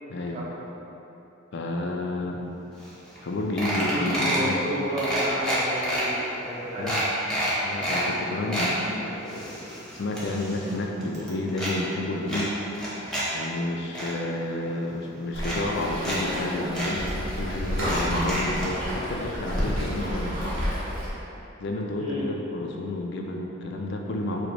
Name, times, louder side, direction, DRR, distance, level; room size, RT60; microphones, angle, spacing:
voice 1, 0.1-0.5 1.5-2.5 3.2-4.6 6.8-7.0 7.6-12.5 13.3-20.4 21.6-24.5, left 2 dB, 60° left, 1 dB, 0.4 m, -30 dB
sound 1, 2.9-3.0 3.2-3.3 3.6-4.5 5.0-6.0 6.5-6.6 6.9-8.0 8.3-8.7 9.2-10.8 11.0-11.7 12.3-13.2 13.6-14.1 14.9-15.0 15.4-16.2 16.4-16.5 16.7-16.9 17.8-18.7 19.6-19.7 20.0-20.1, right 1 dB, 5° left, 0.8 m, -29 dB
voice 2, 3.9-6.9 22.0-22.2, equal, 30° right, -7 dB, 0.8 m, -31 dB
Waves surf, 15.3-21.1, equal, 75° right, 1.4 m, -30 dB
4.9 x 2.1 x 4.5 m, 3.0 s
head